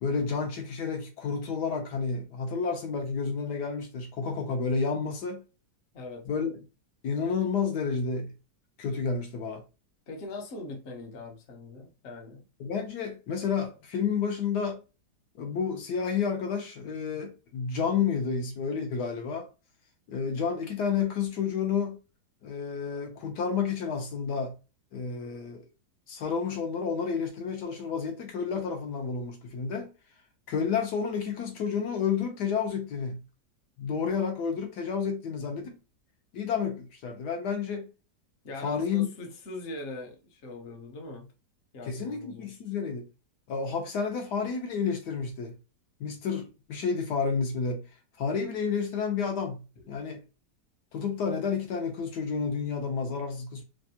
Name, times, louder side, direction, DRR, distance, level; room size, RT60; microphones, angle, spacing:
voice 1, 0.0-5.4 6.3-6.5 7.0-8.3 8.8-9.6 12.6-14.8 15.4-19.5 20.1-22.0 22.4-24.5 24.9-25.6 26.1-29.9 30.5-33.2 33.8-35.8 36.3-37.9 38.6-39.1 41.9-43.1 43.5-45.6 46.0-47.8 48.2-50.2 50.9-53.6, left 6 dB, 75° left, 1.3 m, -30 dB
voice 2, 5.9-6.3 10.1-12.4 38.4-41.3 41.7-42.5, left 2 dB, 50° left, 0.9 m, -41 dB
3.4 x 2.3 x 2.7 m
omnidirectional pair, 1.8 m